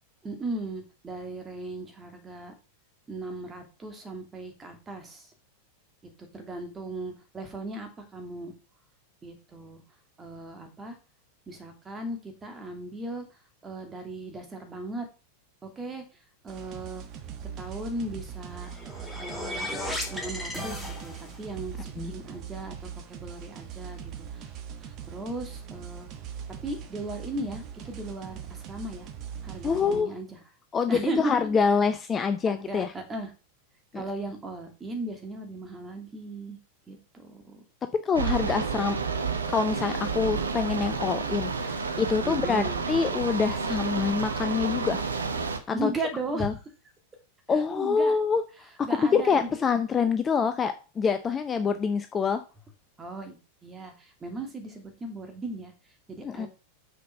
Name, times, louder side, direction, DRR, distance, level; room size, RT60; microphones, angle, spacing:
voice 1, 0.2-2.6 3.1-5.3 6.3-8.5 9.2-9.8 10.2-11.0 11.5-15.1 15.6-16.0 16.4-17.0 17.4-18.7 19.2-19.7 20.1-24.5 24.8-26.1 26.6-29.1 29.4-30.4 30.9-31.7 32.5-33.3 33.9-36.6 36.9-37.6 42.2-42.8 45.7-46.5 47.5-48.2 48.8-49.5 53.0-55.7 56.1-56.5, right 2 dB, 15° right, 6 dB, 2.4 m, -37 dB
sound 1, 16.5-30.0, right 8 dB, 35° right, 1.3 m, -41 dB
sound 2, 18.5-21.5, left 1 dB, 5° left, 2.3 m, -35 dB
voice 2, 29.6-30.1 30.7-32.9 33.9-34.0 38.0-39.0 39.5-45.0 45.7-45.9 46.4-46.5 47.5-48.4 48.8-52.4 56.2-56.5, left 5 dB, 20° left, 9 dB, 0.6 m, -26 dB
sound 3, 38.1-45.6, right 5 dB, 75° right, 1.1 m, -30 dB
6.8 x 5.1 x 5.6 m, 0.32 s
figure-of-eight pair, 90°, 0 cm